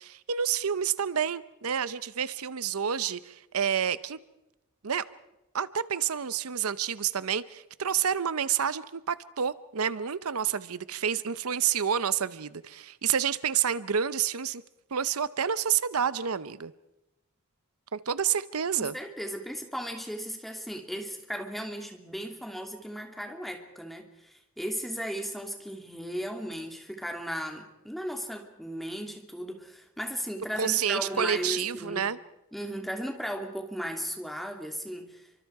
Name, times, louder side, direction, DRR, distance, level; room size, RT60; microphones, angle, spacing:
voice 1, 0.0-4.2 4.8-5.0 5.5-14.6 14.9-16.7 17.9-18.9 30.6-32.2, right 8 dB, 85° right, 15 dB, 0.8 m, -29 dB
voice 2, 18.9-32.1 32.5-35.3, equal, ahead, 3 dB, 2.9 m, -36 dB
29.5 x 25.0 x 4.8 m, 0.91 s
head